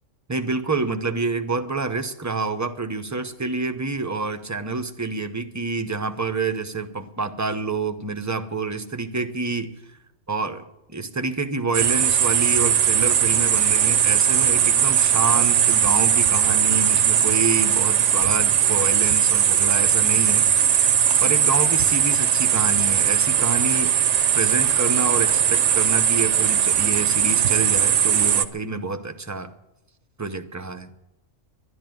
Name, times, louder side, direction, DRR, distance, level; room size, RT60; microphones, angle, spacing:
voice 1, 0.3-10.0 10.3-10.6 10.9-20.5 21.2-24.1 24.3-29.5 30.2-30.9, right 3 dB, 20° right, 8 dB, 0.6 m, -28 dB
sound 1, 11.7-28.4, right 9 dB, 70° right, 1.0 m, -19 dB
11.5 x 10.5 x 9.1 m, 0.91 s
omnidirectional pair, 1.3 m